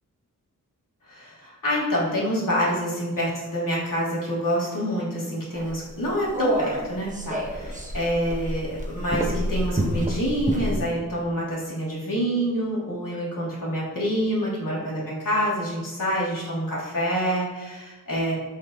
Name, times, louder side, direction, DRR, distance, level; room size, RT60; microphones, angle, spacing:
voice 1, 1.1-18.3, equal, 80° left, -6 dB, 3.0 m, -27 dB
sound 1, 5.5-10.8, equal, 25° right, 1.4 m, -29 dB
14.5 x 5.7 x 3.1 m, 1.2 s
wide cardioid pair, 70°, 33 cm